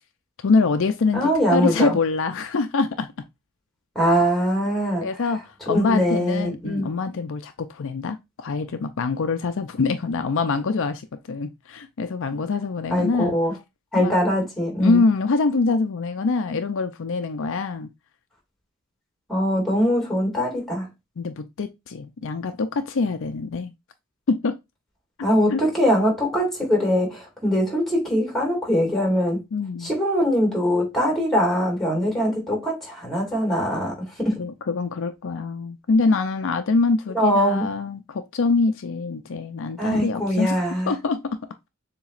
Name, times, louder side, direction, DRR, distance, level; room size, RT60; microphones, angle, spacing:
voice 1, 0.4-3.1 5.0-5.4 5.7-11.0 11.3-13.3 14.0-14.1 14.8-17.9 21.2-23.7 24.3-24.5 25.5-25.6 29.5-29.9 34.4-40.6 40.9-41.4, left 4 dB, 65° left, 0.5 m, -24 dB
voice 2, 1.1-2.0 3.9-5.1 5.7-6.9 12.9-13.5 13.9-15.0 19.3-20.9 25.2-29.4 29.8-34.4 37.1-37.7 39.8-40.9, equal, ahead, 2.3 m, -22 dB
7.0 x 2.9 x 2.5 m
head